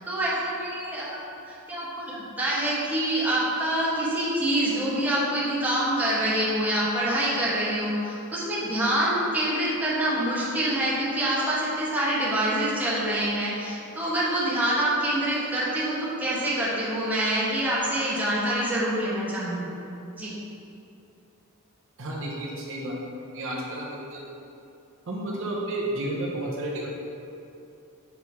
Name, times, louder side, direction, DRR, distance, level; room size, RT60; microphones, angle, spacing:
voice 1, 0.1-19.8 20.1-20.3, right 1 dB, 10° right, -9 dB, 1.2 m, -26 dB
voice 2, 22.0-22.9 23.3-24.2 25.1-26.9, right 1 dB, 60° right, -3 dB, 0.8 m, -31 dB
5.9 x 4.9 x 3.5 m, 2.8 s
head